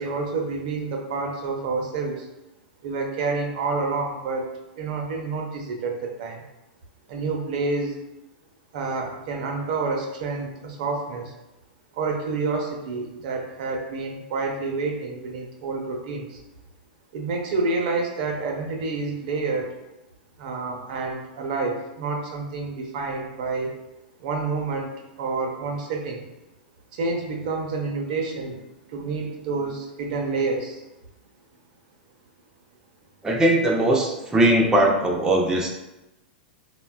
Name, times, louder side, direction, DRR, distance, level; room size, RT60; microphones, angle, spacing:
voice 1, 0.0-2.2 2.8-4.5 4.8-6.4 7.1-8.0 8.7-11.3 12.0-16.4 17.1-19.7 20.4-23.7 24.2-24.9 25.2-26.3 26.9-28.6 28.9-30.8, right 3 dB, 55° right, 2 dB, 0.6 m, -28 dB
voice 2, 33.2-35.7, right 1 dB, 10° right, -1 dB, 0.5 m, -20 dB
3.7 x 2.1 x 2.2 m, 0.96 s
hypercardioid pair, 100°, 5 cm